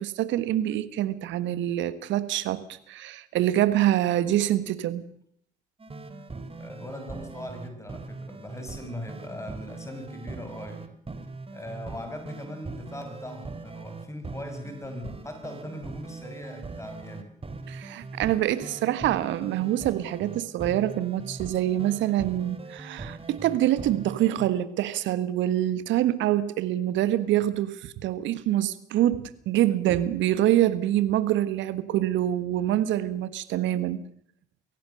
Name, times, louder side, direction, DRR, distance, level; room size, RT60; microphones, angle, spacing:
voice 1, 0.0-5.0 17.7-34.0, right 13 dB, 65° right, 15 dB, 1.4 m, -25 dB
sound 1, 5.8-24.5, right 3 dB, 25° right, 3.2 m, -41 dB
voice 2, 6.6-10.9 11.5-17.4, left 1 dB, 15° left, 7 dB, 5.8 m, -40 dB
23.5 x 17.0 x 6.8 m, 0.64 s
hypercardioid pair, 50°, 21 cm